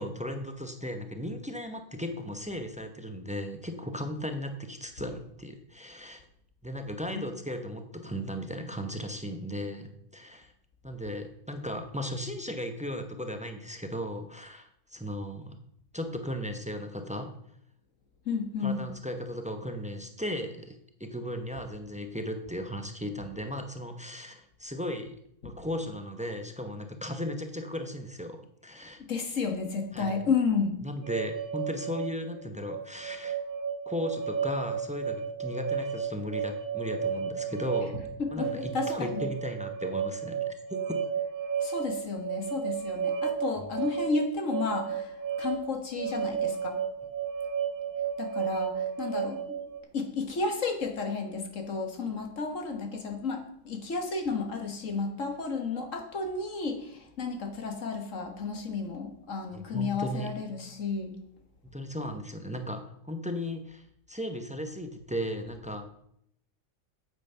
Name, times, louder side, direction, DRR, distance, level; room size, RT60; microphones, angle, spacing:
voice 1, 0.0-6.2 6.6-10.5 10.8-15.6 15.9-17.3 18.6-25.2 25.4-29.0 29.9-30.1 30.8-33.4 33.9-38.0 38.3-40.8 59.5-60.3 61.7-65.9, equal, 5° right, 6 dB, 0.7 m, -36 dB
voice 2, 18.2-18.8 25.4-25.5 29.0-30.8 38.2-39.3 41.6-46.8 48.2-49.6 49.9-61.1, left 4 dB, 60° left, 5 dB, 1.8 m, -32 dB
sound 1, 31.0-49.8, right 7 dB, 85° right, 1.6 m, -33 dB
8.8 x 8.4 x 5.6 m, 0.72 s
omnidirectional pair, 1.5 m